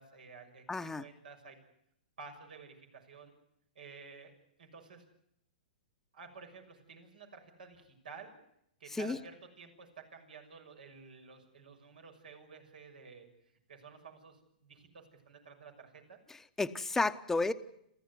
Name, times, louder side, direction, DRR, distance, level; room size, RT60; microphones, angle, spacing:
voice 1, 0.0-1.6 2.2-3.3 3.7-4.3 4.6-5.0 6.1-8.3 8.8-13.3 13.7-16.2, right 5 dB, 75° right, 4 dB, 6.4 m, -52 dB
voice 2, 0.7-1.0 8.9-9.2 16.3-17.5, left 3 dB, 10° left, 9 dB, 1.1 m, -32 dB
27.5 x 15.0 x 9.6 m, 0.76 s
hypercardioid pair, 120°, 5 cm